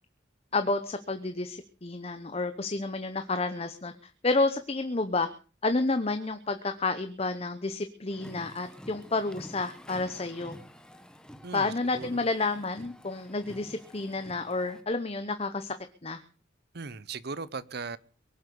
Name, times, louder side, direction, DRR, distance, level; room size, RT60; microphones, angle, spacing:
voice 1, 0.5-5.3 5.6-10.5 11.5-15.7 16.0-16.2, left 3 dB, 35° left, 0.9 m, -30 dB
sound 1, 8.1-14.8, equal, 5° left, 1.1 m, -49 dB
voice 2, 11.4-12.2 16.7-18.0, right 4 dB, 55° right, 0.8 m, -38 dB
22.5 x 7.9 x 6.9 m
head